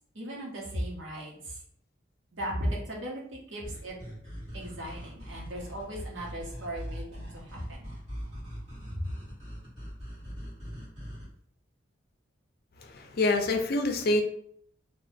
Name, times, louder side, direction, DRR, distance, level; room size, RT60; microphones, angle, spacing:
voice 1, 0.1-1.6 2.3-3.9 4.5-7.9 8.9-9.1, equal, 80° right, -3 dB, 1.0 m, -36 dB
sound 1, 3.6-11.3, equal, 40° right, 1.5 m, -41 dB
voice 2, 12.8-14.2, left 2 dB, 50° left, 4 dB, 0.5 m, -26 dB
2.8 x 2.3 x 3.4 m, 0.67 s
head